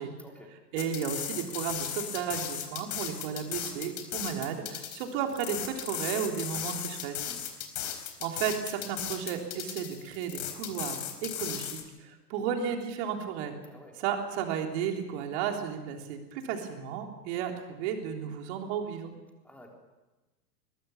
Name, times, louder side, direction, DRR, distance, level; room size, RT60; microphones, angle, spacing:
voice 1, 0.2-0.6 7.2-7.4 13.6-14.0 19.4-19.7, left 1 dB, 5° left, 1 dB, 3.7 m, -51 dB
voice 2, 0.7-7.2 8.2-13.5 14.0-19.1, right 8 dB, 40° right, 3 dB, 3.6 m, -33 dB
sound 1, 0.8-11.8, left 10 dB, 45° left, 4.2 m, -36 dB
22.0 x 21.0 x 7.0 m, 1.1 s
figure-of-eight pair, 110°, 49 cm